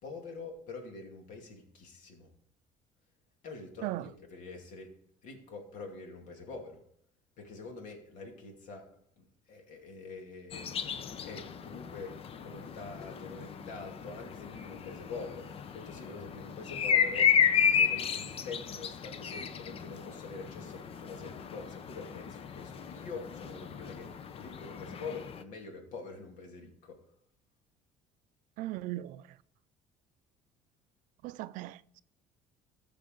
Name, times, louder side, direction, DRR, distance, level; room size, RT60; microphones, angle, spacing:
voice 1, 0.0-2.3 3.4-4.9 5.2-6.8 7.4-8.9 9.2-10.7 11.2-17.3 17.6-27.0, left 4 dB, 70° left, 2.5 m, -45 dB
sound 1, 10.5-25.4, left 7 dB, 45° left, 0.7 m, -33 dB
voice 2, 28.6-29.2 31.2-31.8, right 16 dB, 75° right, 0.4 m, -37 dB
13.5 x 6.7 x 3.9 m
cardioid pair, 105°, 14 cm